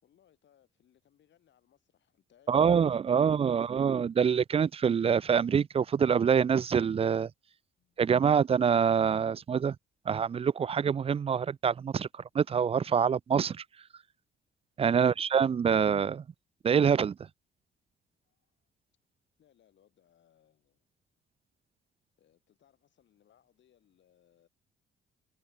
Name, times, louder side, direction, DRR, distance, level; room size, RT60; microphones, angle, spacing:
voice 1, 0.0-3.8 7.8-8.0 14.9-15.2 18.2-18.5 19.4-20.9 22.2-24.5, left 10 dB, 65° left, 7.2 m, -67 dB
voice 2, 2.5-7.3 8.0-9.8 10.1-13.6 14.8-16.2 16.6-17.2, right 7 dB, 30° right, 0.4 m, -25 dB
cardioid pair, 90°, 20 cm